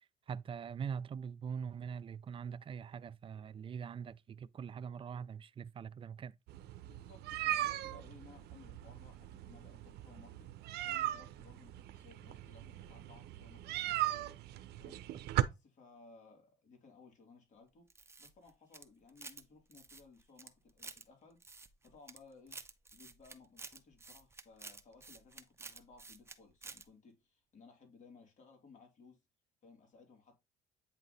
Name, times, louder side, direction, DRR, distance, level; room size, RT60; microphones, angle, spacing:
voice 1, 0.3-6.4, right 7 dB, 30° right, 0.4 m, -43 dB
sound 1, 6.5-15.4, right 14 dB, 75° right, 0.6 m, -39 dB
voice 2, 6.8-10.5 10.8-14.4 14.8-15.0 15.4-17.9 18.2-21.4 21.8-22.6 22.9-29.2 29.6-30.4, left 4 dB, 45° left, 2.6 m, -60 dB
sound 2, 17.9-19.4 19.7-21.0 21.4-22.2 22.5-26.4 26.6-26.8, right 3 dB, 15° right, 0.7 m, -51 dB
8.8 x 3.0 x 4.0 m
cardioid pair, 110°, 17 cm